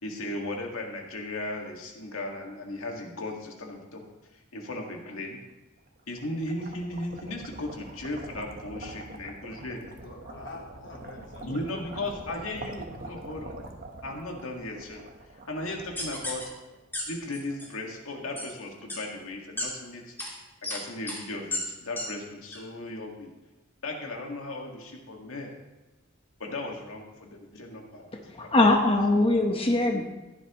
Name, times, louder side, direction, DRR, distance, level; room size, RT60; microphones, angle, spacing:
voice 1, 0.0-4.0 4.3-5.4 6.1-9.8 11.4-13.6 14.0-15.0 15.5-16.5 17.1-20.2 20.7-23.3 23.8-25.5 26.4-28.1 28.4-28.5 29.9-30.0, left 2 dB, 85° left, 1 dB, 2.0 m, -36 dB
sound 1, 5.9-17.0, right 2 dB, 45° right, 1.2 m, -44 dB
voice 2, 10.0-11.8 12.1-12.2 18.5-18.7 27.5-27.6, left 2 dB, 60° left, -1 dB, 1.3 m, -46 dB
sound 2, 16.0-16.4 16.9-17.0 17.3-17.7 18.4-18.5 18.9-19.0 19.6-19.7 20.2-20.3 20.6-20.8 21.1-21.2 21.5-21.6 22.0-22.1 22.5-22.6, left 2 dB, 10° left, 2.5 m, -32 dB
voice 3, 28.3-30.0, left 2 dB, 25° left, 2 dB, 1.1 m, -22 dB
15.0 x 11.0 x 3.1 m, 1.1 s
head